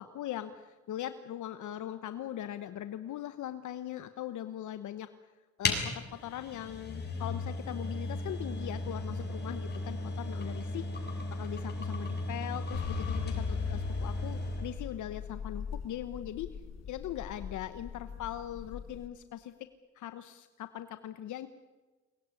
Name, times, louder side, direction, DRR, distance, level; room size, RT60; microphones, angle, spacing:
voice 1, 0.0-5.1 5.6-16.6 16.9-19.5 19.9-21.5, left 11 dB, 75° left, 10 dB, 1.1 m, -40 dB
sound 1, 5.6-14.8, left 2 dB, 35° left, 6.8 m, -36 dB
sound 2, 12.7-19.1, left 7 dB, 60° left, 2.1 m, -39 dB
23.0 x 19.5 x 9.8 m, 1.3 s
cardioid pair, 90°, 30 cm